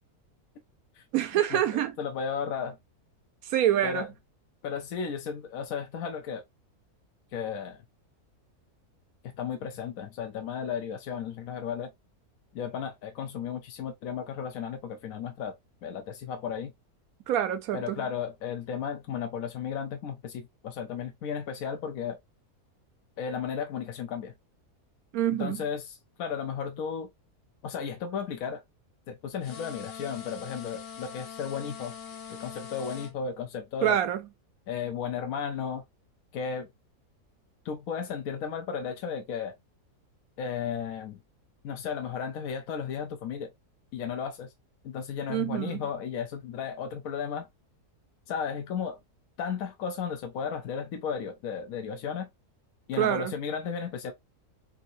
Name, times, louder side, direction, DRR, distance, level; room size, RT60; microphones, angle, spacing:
voice 1, 1.1-1.9 3.4-4.1 17.3-18.0 25.1-25.6 33.8-34.2 45.3-45.8 53.0-53.3, right 11 dB, 75° right, 1.0 m, -26 dB
voice 2, 2.0-2.8 3.8-4.1 4.6-6.4 7.3-7.8 9.4-11.9 12.5-15.5 15.8-16.7 17.7-22.2 23.2-24.3 25.4-27.1 27.6-28.6 29.1-32.0 32.4-34.0 34.7-35.8 36.3-36.7 37.6-39.5 40.4-41.2 41.6-43.5 43.9-44.5 44.8-47.5 48.3-49.0 49.4-52.3 52.9-54.1, left 7 dB, 70° left, 1.1 m, -34 dB
sound 1, 29.4-33.1, left 7 dB, 85° left, 1.5 m, -43 dB
3.6 x 2.8 x 2.6 m
omnidirectional pair, 1.6 m